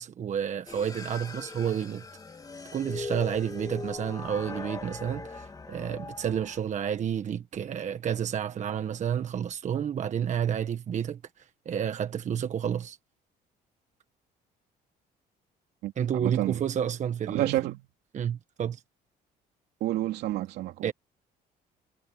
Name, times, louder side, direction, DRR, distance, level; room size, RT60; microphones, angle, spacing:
voice 1, 0.0-2.0 2.7-13.0 16.0-17.5 18.1-18.8 20.8-20.9, right 8 dB, 45° right, 1.4 m, -30 dB
sound 1, 0.7-6.6, left 3 dB, 20° left, 2.7 m, -40 dB
voice 2, 15.8-16.6 17.3-17.8 19.8-20.9, right 15 dB, 80° right, 2.9 m, -30 dB
cardioid pair, 110°, 17 cm